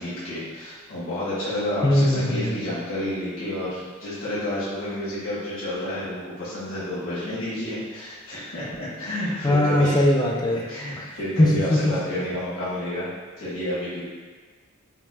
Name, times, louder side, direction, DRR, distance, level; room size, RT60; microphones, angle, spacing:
voice 1, 0.0-10.0 10.7-13.1 13.4-14.0, left 1 dB, 70° left, -11 dB, 1.3 m, -30 dB
voice 2, 1.8-2.6 9.4-10.6 11.0-11.1 11.4-11.9, left 1 dB, 20° left, 0 dB, 0.3 m, -20 dB
5.3 x 2.4 x 2.3 m, 1.3 s
head